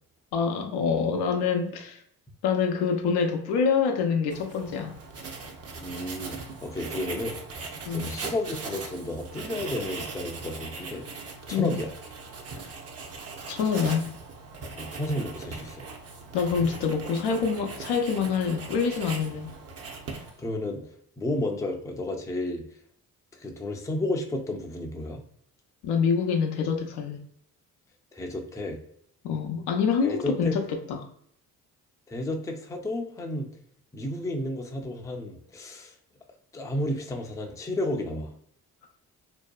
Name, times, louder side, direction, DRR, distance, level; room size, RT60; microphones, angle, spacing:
voice 1, 0.3-2.0 2.4-4.9 7.9-8.1 11.5-11.8 13.5-14.1 16.3-19.5 25.8-27.2 29.2-31.1, left 6 dB, 75° left, 4 dB, 0.5 m, -26 dB
Writing, 4.3-20.5, right 4 dB, 40° right, 0.6 m, -40 dB
voice 2, 5.8-7.4 7.9-11.0 11.5-11.9 14.7-15.9 20.1-20.9 21.2-22.6 23.3-25.2 28.1-28.8 30.0-30.5 32.1-33.5 33.9-35.9 36.5-38.3, left 1 dB, 10° left, 3 dB, 0.4 m, -32 dB
2.7 x 2.2 x 2.2 m, 0.67 s
supercardioid pair, 60°, 39 cm